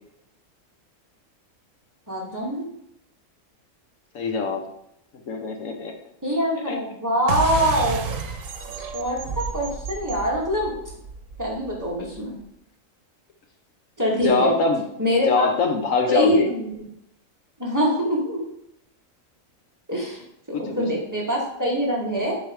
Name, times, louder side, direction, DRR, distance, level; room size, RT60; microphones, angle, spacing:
voice 1, 2.1-2.7 6.2-8.0 8.9-10.7 11.4-12.4 14.0-14.5 15.0-15.5 16.1-16.7 17.6-18.4 19.9-22.4, equal, 15° right, -4 dB, 2.4 m, -24 dB
voice 2, 4.1-4.6 5.3-5.9 6.7-6.8 14.2-14.8 15.3-16.5 20.5-20.8, left 4 dB, 70° left, 4 dB, 1.4 m, -23 dB
sound 1, 7.3-12.2, right 4 dB, 70° right, 1.3 m, -31 dB
7.6 x 5.4 x 4.9 m, 0.78 s
omnidirectional pair, 1.4 m